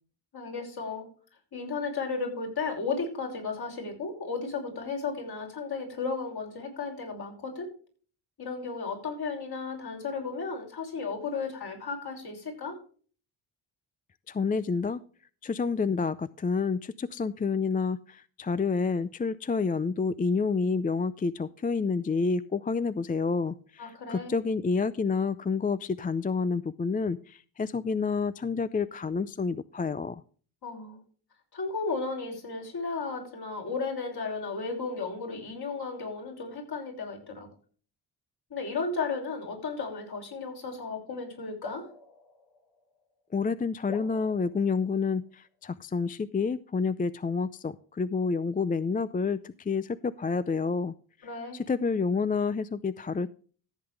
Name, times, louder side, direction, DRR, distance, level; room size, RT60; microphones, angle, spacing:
voice 1, 0.3-1.1 1.5-7.7 8.4-12.8 23.8-24.3 30.6-31.0 31.5-37.5 38.5-41.9 51.2-51.6, left 4 dB, 55° left, 1 dB, 5.9 m, -34 dB
voice 2, 14.3-15.0 15.4-30.2 43.3-50.9 51.5-53.3, left 4 dB, 20° left, 16 dB, 0.4 m, -29 dB
sound 1, 41.6-43.3 43.8-45.5, left 3 dB, 80° left, 3.6 m, -47 dB
14.5 x 7.9 x 3.3 m, 0.41 s
cardioid pair, 80°, 45 cm